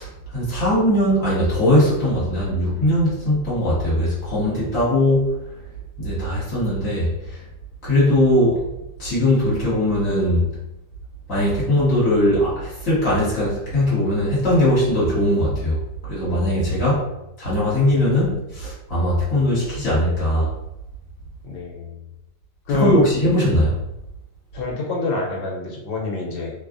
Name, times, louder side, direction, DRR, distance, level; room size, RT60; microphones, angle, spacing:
voice 1, 0.0-5.4 6.0-7.1 7.8-8.6 9.0-10.4 11.3-15.8 16.1-17.0 17.4-20.5 22.7-23.8, left 1 dB, 50° left, -10 dB, 1.6 m, -20 dB
voice 2, 21.4-22.0 22.7-23.0 24.5-26.5, left 3 dB, 80° left, -2 dB, 1.4 m, -25 dB
3.2 x 2.3 x 2.5 m, 0.90 s
omnidirectional pair, 2.0 m